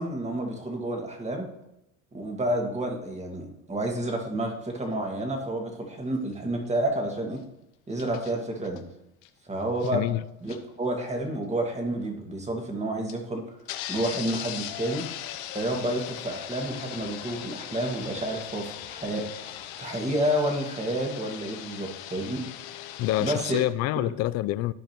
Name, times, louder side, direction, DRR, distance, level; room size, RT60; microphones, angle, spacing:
voice 1, 0.0-1.5 2.1-7.4 7.9-8.8 9.5-10.1 10.4-13.5 13.9-15.0 15.5-22.4 23.2-23.6 24.0-24.1, right 1 dB, 20° right, 1.9 m, -30 dB
sound 1, 4.9-5.0 7.9-8.3 8.6-8.8 9.2-9.3 9.6-10.1 10.5-10.6 11.2-11.3 12.0-12.1 13.1-13.2 13.6-23.6, left 12 dB, 85° left, 0.9 m, -39 dB
voice 2, 9.9-10.2 23.0-24.7, left 15 dB, 55° left, 0.4 m, -27 dB
14.0 x 5.0 x 3.0 m
supercardioid pair, 95°, 32 cm